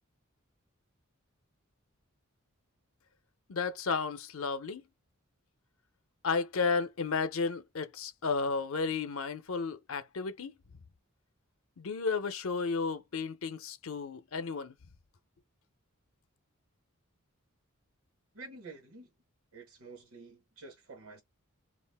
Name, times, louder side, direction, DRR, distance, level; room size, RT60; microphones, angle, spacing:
voice 1, 3.5-4.8 6.2-10.5 11.8-14.7, left 4 dB, 70° left, 0.6 m, -33 dB
voice 2, 18.3-19.1 19.5-21.2, right 3 dB, 75° right, 1.2 m, -49 dB
2.4 x 2.1 x 3.4 m
head